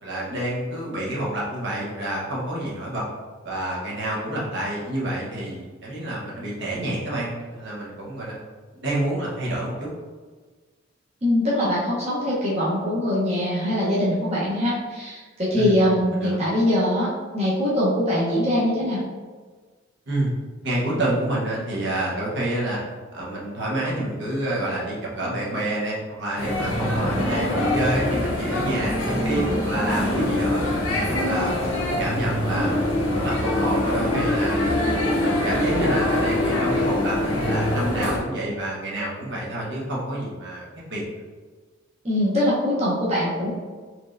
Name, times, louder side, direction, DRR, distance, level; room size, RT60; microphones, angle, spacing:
voice 1, 0.0-3.0 3.4-8.4 8.8-9.9 15.5-16.4 20.1-20.3 20.6-22.8 23.1-30.6 31.1-31.5 31.8-34.8 35.2-40.6 40.9-41.0, right 1 dB, 55° right, -5 dB, 1.0 m, -28 dB
voice 2, 11.2-17.1 17.3-19.0 42.0-43.5, left 1 dB, 30° right, -8 dB, 0.8 m, -22 dB
sound 1, 26.4-38.2, left 1 dB, 80° left, 0.9 m, -23 dB
4.4 x 3.1 x 2.5 m, 1.4 s
head